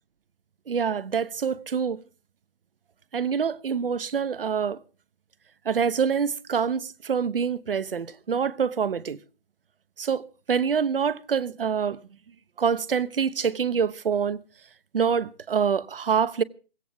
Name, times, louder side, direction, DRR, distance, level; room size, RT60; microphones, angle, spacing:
voice 1, 0.7-2.0 3.1-4.8 5.6-9.2 10.0-12.0 12.6-14.4 14.9-16.4, right 6 dB, 70° right, 1.1 m, -26 dB
18.0 x 16.5 x 3.5 m
hypercardioid pair, 150°, 29 cm